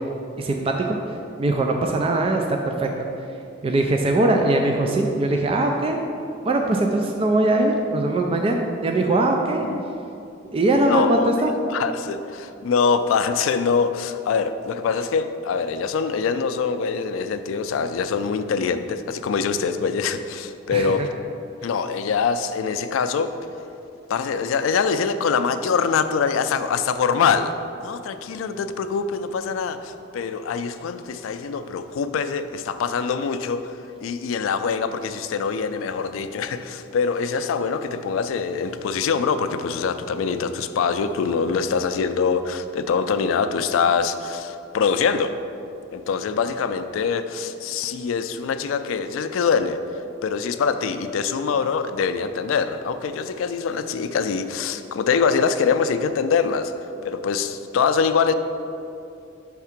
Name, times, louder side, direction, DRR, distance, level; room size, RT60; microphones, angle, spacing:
voice 1, 0.4-1.0 1.4-2.9 3.6-6.0 6.4-9.7 10.5-11.5 20.7-20.9, right 2 dB, 30° right, 2 dB, 0.3 m, -21 dB
voice 2, 10.7-11.3 11.7-21.1 21.6-23.3 24.1-27.5 27.8-33.7 34.0-45.3 45.9-49.8 50.2-56.7 57.0-58.3, left 5 dB, 90° left, 10 dB, 0.3 m, -24 dB
5.7 x 3.6 x 5.8 m, 2.7 s
head